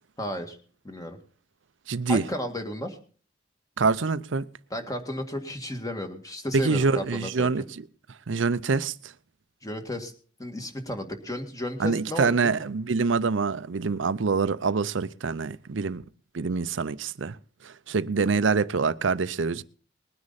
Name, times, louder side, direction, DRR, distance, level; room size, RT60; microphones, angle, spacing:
voice 1, 0.2-0.6 0.8-1.2 2.1-3.0 4.7-7.5 9.6-10.1 10.4-12.5, left 1 dB, 20° left, 2.0 m, -33 dB
voice 2, 1.9-2.2 3.8-4.4 6.5-7.6 8.3-9.1 11.8-16.0 16.3-17.4 17.6-19.6, right 4 dB, 70° right, 0.6 m, -25 dB
20.5 x 9.7 x 4.1 m
head